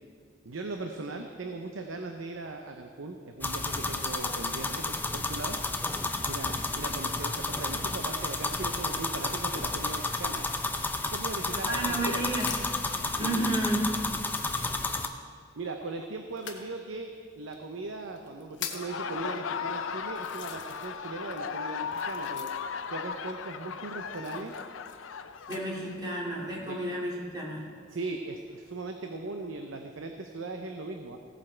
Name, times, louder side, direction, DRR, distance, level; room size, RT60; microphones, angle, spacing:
voice 1, 0.4-5.6 6.2-10.5 11.1-12.3 13.0-13.5 15.6-17.1 17.4-22.5 22.9-24.5 26.6-26.8 27.9-31.2, right 3 dB, 85° right, 4 dB, 0.7 m, -39 dB
sound 1, 3.4-15.1, left 3 dB, 10° left, 0.5 m, -32 dB
voice 2, 11.7-12.5 12.9-13.9 25.5-27.7, right 1 dB, 20° right, -4 dB, 2.3 m, -31 dB
sound 2, 12.4-12.9 13.6-13.7 14.2-15.2 16.3-16.7 17.5-17.6 18.2-19.0 19.6-19.7 20.2-21.1 21.3-22.9 24.1-25.6 26.3-26.8, left 8 dB, 60° left, 1.1 m, -42 dB
Laughter, 18.6-26.2, left 6 dB, 85° left, 0.5 m, -37 dB
16.5 x 7.6 x 4.4 m, 2.2 s
head